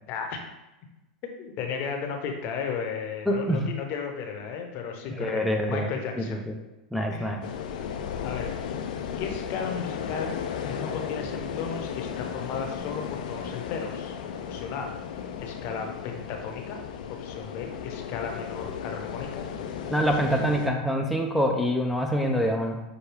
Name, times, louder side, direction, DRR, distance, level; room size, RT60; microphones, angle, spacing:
voice 1, 0.1-0.4 1.4-6.4 7.1-7.3 8.2-8.5 9.2-10.4 10.6-14.2 14.5-14.9 15.4-16.8 17.1-19.5, left 6 dB, 50° left, 3 dB, 0.8 m, -34 dB
voice 2, 3.3-3.7 5.2-5.9 6.2-6.5 6.9-7.4 19.9-22.8, equal, ahead, 0 dB, 0.5 m, -25 dB
sound 1, 7.4-20.7, left 7 dB, 70° left, 0.4 m, -35 dB
6.0 x 2.3 x 3.3 m, 1.0 s
hypercardioid pair, 100°, 5 cm